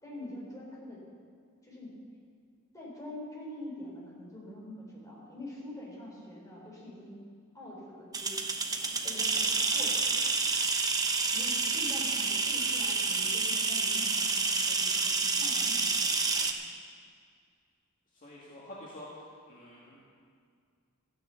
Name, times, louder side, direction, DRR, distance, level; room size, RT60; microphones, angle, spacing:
voice 1, 0.0-1.0 1.6-2.0 2.7-7.2 7.5-10.4 11.3-16.5, left 1 dB, 15° left, -5 dB, 4.3 m, -45 dB
sound 1, 8.1-16.5, right 4 dB, 20° right, 0.9 m, -29 dB
voice 2, 9.0-9.8 18.1-20.0, left 1 dB, 40° left, -6 dB, 2.0 m, -48 dB
13.5 x 9.5 x 7.1 m, 2.2 s
head